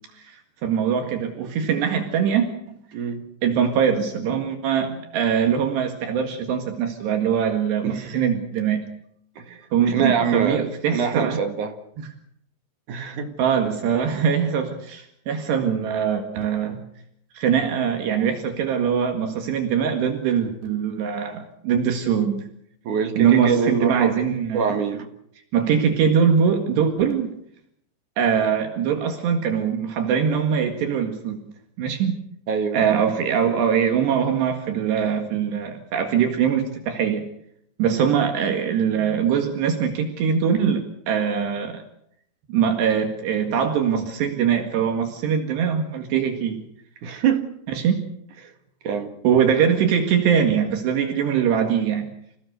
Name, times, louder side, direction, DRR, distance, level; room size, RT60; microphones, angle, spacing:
voice 1, 0.6-2.8 3.4-8.9 9.7-11.4 13.4-16.8 17.4-22.4 23.2-24.7 25.5-27.3 28.2-31.4 31.8-32.2 32.7-37.3 37.8-41.8 42.5-46.6 47.7-48.1 49.2-52.1, right 7 dB, 70° right, 5 dB, 3.9 m, -22 dB
voice 2, 2.9-3.2 7.8-8.2 9.4-10.7 10.9-11.8 12.9-13.3 22.8-24.2 24.5-25.1 32.5-32.8 37.9-38.2 47.0-47.5 48.4-48.5 48.8-49.1, right 6 dB, 55° right, 7 dB, 2.8 m, -25 dB
27.5 x 17.5 x 6.6 m, 0.71 s
omnidirectional pair, 5.1 m